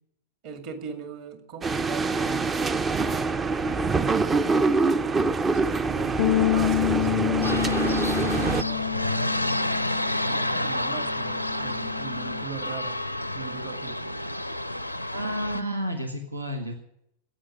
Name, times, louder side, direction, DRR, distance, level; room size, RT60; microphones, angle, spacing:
voice 1, 0.4-2.8 5.0-9.4 10.3-13.0 13.3-14.1, right 7 dB, 45° right, 6 dB, 2.2 m, -40 dB
sound 1, 1.6-8.6, right 4 dB, 20° right, 0.6 m, -25 dB
sound 2, 6.2-12.4, left 14 dB, 50° left, 0.4 m, -28 dB
sound 3, 7.4-15.6, left 1 dB, 90° left, 0.7 m, -30 dB
voice 2, 15.1-16.7, equal, 85° right, 5 dB, 1.4 m, -31 dB
14.5 x 9.0 x 8.7 m, 0.76 s
figure-of-eight pair, 90°, 0 cm